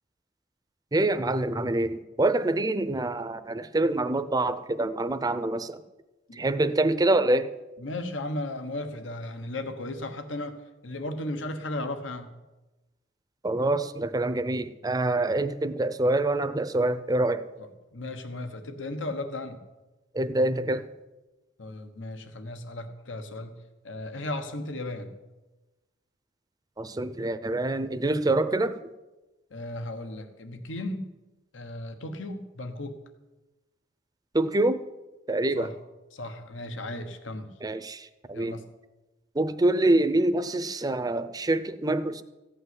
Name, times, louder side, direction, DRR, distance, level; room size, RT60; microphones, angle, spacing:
voice 1, 0.9-5.8 6.3-7.5 13.4-17.5 20.1-20.9 26.8-28.8 34.3-34.8 35.3-35.7 37.6-38.6 39.3-42.2, right 2 dB, 20° right, 0.6 m, -26 dB
voice 2, 7.8-12.3 17.6-19.6 21.6-23.6 23.8-25.1 29.5-31.1 31.5-33.0 35.5-35.7 36.1-37.5 38.3-38.7, left 1 dB, 80° left, 1.3 m, -35 dB
15.0 x 5.7 x 9.6 m
head